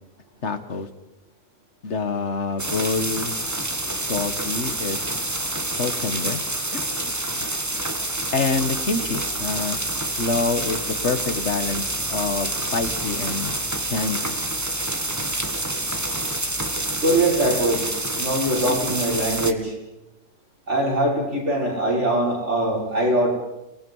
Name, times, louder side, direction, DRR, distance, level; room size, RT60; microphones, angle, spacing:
voice 1, 0.4-0.9 1.8-3.4 4.1-5.0 5.7-6.4 6.7-7.8 8.3-13.6 13.9-14.3, left 4 dB, 50° left, 10 dB, 1.6 m, -27 dB
sound 1, 2.6-19.5, right 1 dB, 10° right, 1.2 m, -27 dB
voice 2, 17.0-17.9 18.2-19.7 20.7-23.3, right 1 dB, 45° right, -3 dB, 6.1 m, -22 dB
29.5 x 19.5 x 5.5 m, 0.94 s
omnidirectional pair, 1.6 m